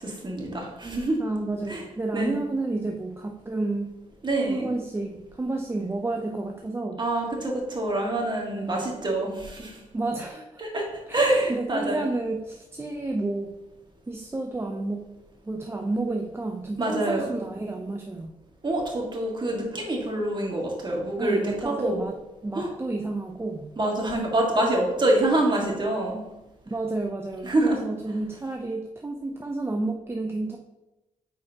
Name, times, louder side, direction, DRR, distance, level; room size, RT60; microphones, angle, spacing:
voice 1, 0.0-1.2 1.7-1.8 2.1-2.4 4.2-4.7 7.0-9.8 10.6-10.9 11.1-12.1 16.8-17.3 18.6-22.0 22.5-22.7 23.8-26.3 27.4-27.8, right 1 dB, 35° right, -1 dB, 1.9 m, -26 dB
voice 2, 1.2-3.9 4.5-7.0 8.5-8.8 9.9-10.5 11.1-13.5 14.1-15.0 15.4-18.3 21.2-22.1 22.4-23.7 26.7-30.6, right 2 dB, 15° right, 2 dB, 0.6 m, -30 dB
8.7 x 4.7 x 2.9 m, 0.99 s
cardioid pair, 85°, 14 cm